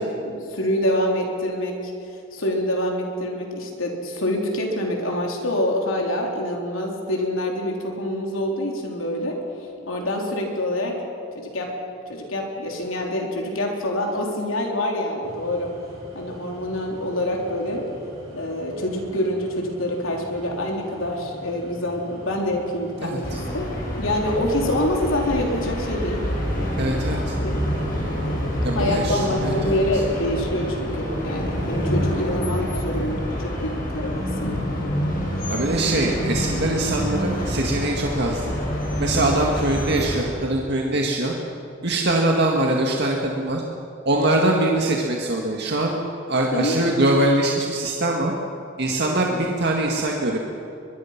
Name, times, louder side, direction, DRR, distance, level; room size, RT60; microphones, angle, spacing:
voice 1, 0.0-1.9 2.3-9.4 9.9-11.0 11.4-11.7 12.1-15.7 16.1-17.8 18.3-23.7 24.0-26.3 26.6-27.6 28.7-34.6 46.5-46.8, left 1 dB, 85° left, 0 dB, 4.0 m, -26 dB
sound 1, 15.2-28.5, equal, 30° right, 7.1 m, -44 dB
voice 2, 23.0-23.4 26.8-27.3 28.6-29.8 35.5-38.5 39.0-41.3 41.8-43.6 44.1-46.0 46.3-48.3 48.8-50.4, right 1 dB, 55° right, 0 dB, 1.9 m, -22 dB
sound 2, 23.2-40.2, equal, 45° left, 6.5 m, -27 dB
22.5 x 22.5 x 6.0 m, 2.7 s
head